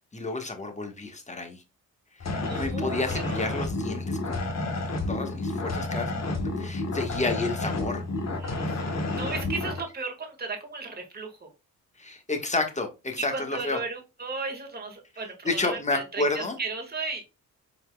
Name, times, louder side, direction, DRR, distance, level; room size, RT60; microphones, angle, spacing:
voice 1, 0.1-1.6 2.2-4.5 5.1-8.0 12.0-13.8 15.4-16.6, left 2 dB, 20° left, 1.3 m, -31 dB
sound 1, 2.2-9.8, left 2 dB, 45° left, 1.3 m, -30 dB
voice 2, 2.4-3.6 8.4-8.8 9.1-11.5 13.2-17.2, right 4 dB, 25° right, 1.6 m, -35 dB
4.5 x 4.2 x 2.2 m
supercardioid pair, 60°, 37 cm